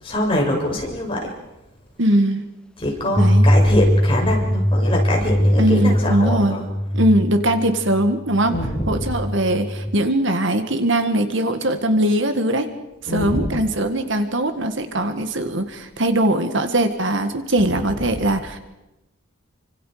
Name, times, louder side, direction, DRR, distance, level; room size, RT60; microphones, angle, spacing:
voice 1, 0.0-1.3 2.8-6.6 8.5-9.1 13.0-13.5 17.8-18.2, left 1 dB, 25° left, -1 dB, 6.9 m, -24 dB
voice 2, 2.0-2.4 3.2-3.5 5.6-6.6 6.9-8.6 8.9-12.7 13.0-18.6, right 1 dB, 60° right, 7 dB, 1.9 m, -20 dB
sound 1, 3.1-10.0, equal, 5° left, 0.9 m, -21 dB
29.5 x 25.5 x 5.1 m, 0.98 s
head